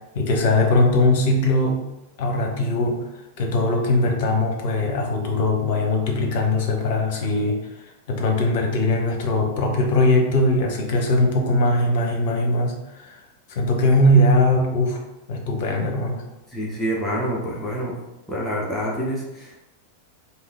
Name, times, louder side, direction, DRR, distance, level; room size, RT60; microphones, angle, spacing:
voice 1, 0.1-1.8 2.2-3.0 3.4-7.6 8.1-13.2 13.5-15.0 15.3-16.2, left 1 dB, 50° left, 2 dB, 0.8 m, -20 dB
voice 2, 16.5-18.0 18.3-19.6, equal, 5° left, -5 dB, 0.9 m, -27 dB
3.6 x 2.7 x 3.5 m, 0.96 s
figure-of-eight pair, 90°, 0 cm